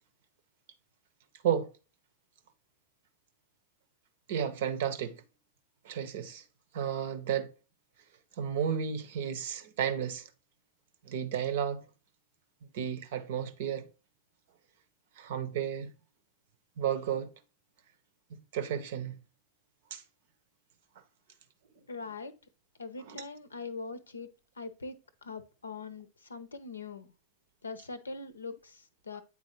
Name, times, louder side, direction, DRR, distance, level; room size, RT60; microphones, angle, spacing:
voice 1, 4.3-5.2 5.8-6.4 6.7-7.5 8.4-10.3 11.0-11.8 12.7-13.9 15.2-15.9 16.8-17.3 18.3-19.2 19.9-20.0 23.1-23.2, right 8 dB, 55° right, 0.7 m, -32 dB
voice 2, 21.9-22.3 22.8-24.3 24.6-27.1 27.6-29.2, left 4 dB, 75° left, 0.6 m, -42 dB
8.5 x 4.0 x 3.0 m
figure-of-eight pair, 90°, 0 cm